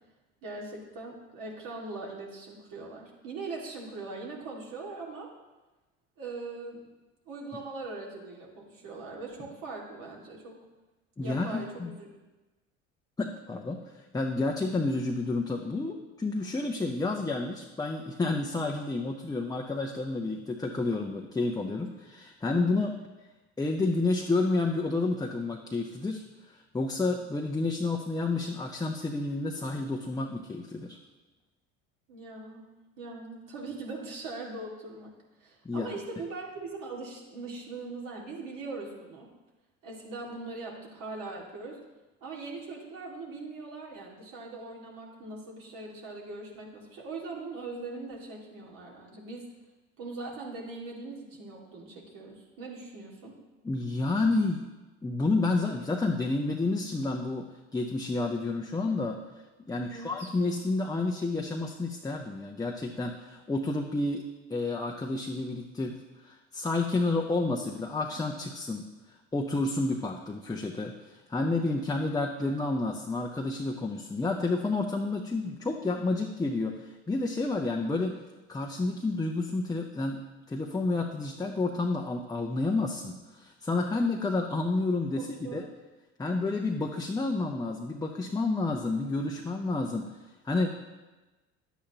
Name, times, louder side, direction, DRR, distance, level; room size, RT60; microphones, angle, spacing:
voice 1, 0.4-5.3 6.2-6.9 7.3-10.6 11.2-12.1 32.1-32.6 33.0-35.1 35.4-39.3 39.8-41.8 42.2-49.5 50.0-53.3 59.7-60.3 85.2-85.6, right 3 dB, 60° right, -2 dB, 2.2 m, -41 dB
voice 2, 11.2-11.9 13.2-22.9 23.6-31.0 35.6-35.9 53.6-54.7 55.0-57.5 57.7-59.2 59.7-64.2 64.5-65.9 66.2-68.8 69.3-78.1 78.5-80.2 80.5-85.6 86.2-90.1 90.4-90.8, left 3 dB, 10° left, 1 dB, 0.7 m, -30 dB
10.0 x 8.5 x 2.9 m, 1.1 s
hypercardioid pair, 70°, 37 cm